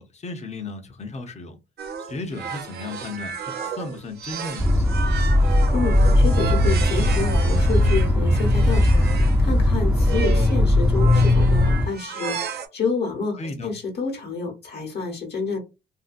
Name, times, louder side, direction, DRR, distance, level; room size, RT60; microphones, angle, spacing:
voice 1, 0.0-1.6 2.0-5.0 13.4-13.7, left 3 dB, 35° left, 0.7 m, -35 dB
sound 1, 1.8-9.4 10.0-10.6 10.9-12.7, right 7 dB, 55° right, 0.6 m, -33 dB
sound 2, 4.6-11.9, left 1 dB, 10° right, 0.6 m, -18 dB
voice 2, 5.4-15.6, left 4 dB, 55° left, 1.1 m, -29 dB
2.7 x 2.6 x 2.5 m
cardioid pair, 90°, 20 cm